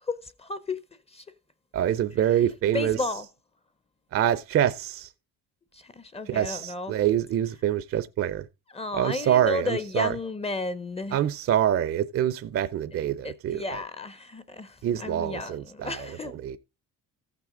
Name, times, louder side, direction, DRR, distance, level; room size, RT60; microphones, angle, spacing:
voice 1, 0.1-0.8 1.1-1.3 2.7-3.3 5.7-7.0 8.7-11.2 13.2-16.4, left 3 dB, 20° left, 0.6 m, -33 dB
voice 2, 1.7-3.0 4.1-5.1 6.3-8.5 8.9-10.1 11.1-13.6 14.8-16.1 16.3-16.6, right 11 dB, 40° right, 0.5 m, -25 dB
14.5 x 6.1 x 3.7 m
cardioid pair, 135°, 35 cm